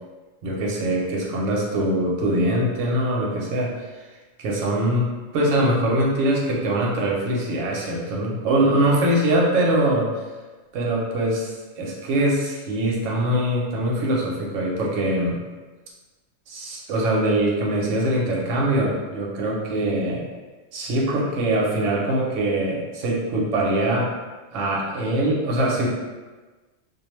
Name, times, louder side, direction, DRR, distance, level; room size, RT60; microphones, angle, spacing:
voice 1, 0.4-3.9 4.4-5.1 5.3-10.1 10.7-15.4 16.5-20.2 20.7-24.1 24.5-25.9, right 1 dB, 70° right, -3 dB, 0.9 m, -23 dB
2.4 x 2.1 x 2.9 m, 1.3 s
omnidirectional pair, 1.4 m